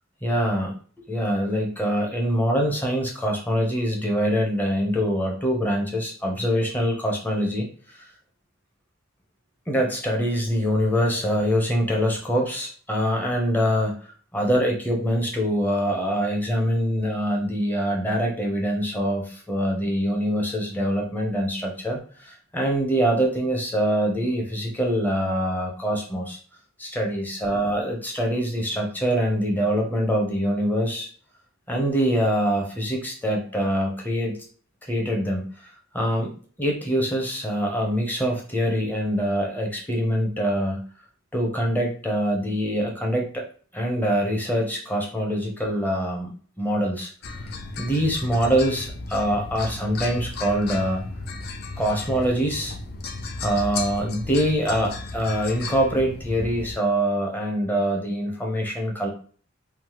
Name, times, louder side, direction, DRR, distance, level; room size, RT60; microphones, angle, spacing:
voice 1, 0.2-0.7 1.1-8.0 9.7-14.0 14.3-26.4 26.8-31.1 31.7-34.4 34.9-36.3 36.6-40.8 41.3-43.4 43.7-47.1 47.8-51.0 51.8-52.8 53.4-59.1, equal, 10° left, 0 dB, 0.6 m, -24 dB
sound 1, 47.2-56.8, left 3 dB, 50° left, 0.4 m, -34 dB
3.2 x 2.1 x 2.9 m, 0.43 s
head